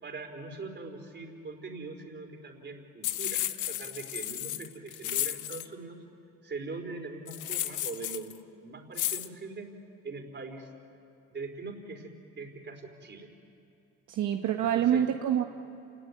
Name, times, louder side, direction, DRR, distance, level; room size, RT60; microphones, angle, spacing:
voice 1, 0.0-6.0 6.4-9.7 10.0-10.7 11.3-13.3 14.6-15.1, right 3 dB, 35° right, 4 dB, 4.2 m, -42 dB
sound 1, 3.0-5.7 7.3-8.3 8.9-9.3, left 13 dB, 70° left, 1.0 m, -33 dB
voice 2, 14.1-15.4, right 10 dB, 65° right, 4 dB, 1.3 m, -26 dB
28.5 x 19.0 x 9.7 m, 2.9 s
cardioid pair, 105°, 32 cm